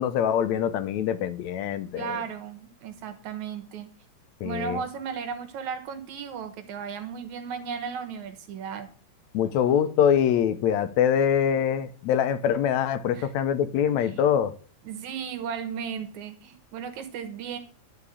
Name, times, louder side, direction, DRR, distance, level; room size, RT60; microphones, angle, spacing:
voice 1, 0.0-2.1 4.4-4.8 9.3-14.5, left 9 dB, 80° left, 11 dB, 2.1 m, -24 dB
voice 2, 2.0-3.9 4.4-8.9 13.1-13.3 14.0-14.3 14.8-17.6, right 7 dB, 80° right, 9 dB, 2.7 m, -35 dB
12.5 x 5.0 x 8.3 m, 0.42 s
omnidirectional pair, 3.3 m